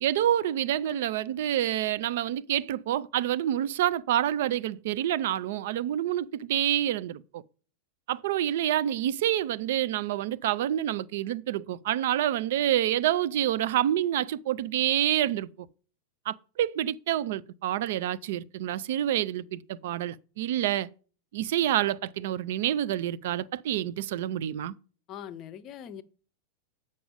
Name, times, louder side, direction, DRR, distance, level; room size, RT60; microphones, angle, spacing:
voice 1, 0.0-7.4 8.1-15.5 16.3-20.9 21.3-24.7, right 12 dB, 55° right, 0.4 m, -27 dB
voice 2, 25.1-26.0, left 9 dB, 35° left, 0.6 m, -41 dB
7.7 x 5.4 x 5.0 m
figure-of-eight pair, 90°, 0 cm